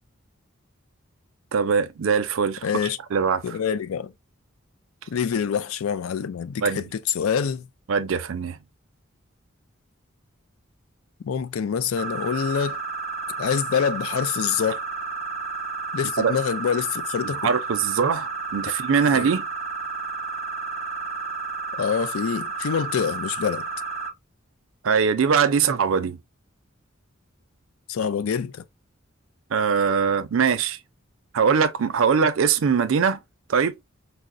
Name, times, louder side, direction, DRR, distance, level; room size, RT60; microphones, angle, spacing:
voice 1, 1.5-2.7 3.1-3.6 6.6-6.8 7.9-8.6 16.2-16.3 17.2-19.4 24.8-26.2 29.5-30.8 31.3-33.2 33.5-33.7, right 6 dB, 70° right, 0.4 m, -22 dB
voice 2, 2.6-3.0 3.4-4.1 5.1-7.7 11.3-12.8 13.4-14.8 15.9-17.6 19.1-19.3 21.7-23.7 27.9-28.6, left 7 dB, 85° left, 0.4 m, -26 dB
sound 1, 12.0-24.1, right 4 dB, 35° left, 1.7 m, -31 dB
4.7 x 2.0 x 2.5 m
head